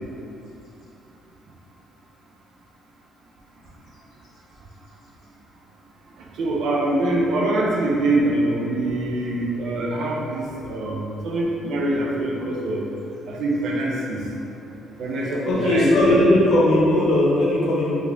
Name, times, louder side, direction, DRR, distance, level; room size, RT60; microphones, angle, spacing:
voice 1, 6.4-12.8 13.3-14.2 15.0-16.2, right 1 dB, 70° right, -2 dB, 0.4 m, -24 dB
voice 2, 15.4-17.9, left 1 dB, 65° left, -5 dB, 0.7 m, -18 dB
3.1 x 2.4 x 2.5 m, 2.9 s
supercardioid pair, 75°, 0 cm